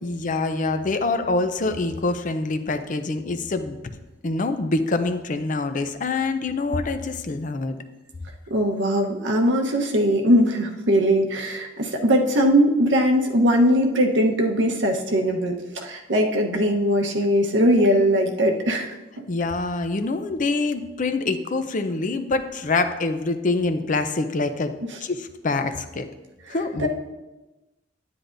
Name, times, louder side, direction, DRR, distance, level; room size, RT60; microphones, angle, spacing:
voice 1, 0.0-3.8 4.2-7.8 19.3-24.7 25.0-26.1 26.5-26.9, left 3 dB, 45° left, 8 dB, 0.6 m, -25 dB
voice 2, 8.5-19.3 26.8-26.9, equal, 80° right, 2 dB, 1.0 m, -20 dB
9.7 x 9.5 x 2.6 m, 1.1 s
head